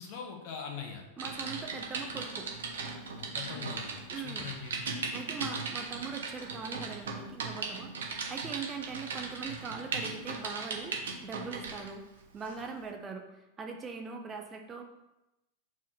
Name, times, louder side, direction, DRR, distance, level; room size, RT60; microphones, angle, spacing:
voice 1, 0.0-1.0 3.1-4.8, left 6 dB, 45° left, 3 dB, 1.3 m, -42 dB
voice 2, 1.2-2.5 4.1-4.5 5.1-12.0 12.3-14.8, right 5 dB, 20° right, 3 dB, 0.8 m, -41 dB
Typing, 1.2-11.9 12.4-12.6, right 4 dB, 65° right, 1.1 m, -38 dB
4.7 x 4.3 x 5.8 m, 0.94 s
figure-of-eight pair, 90°, 0 cm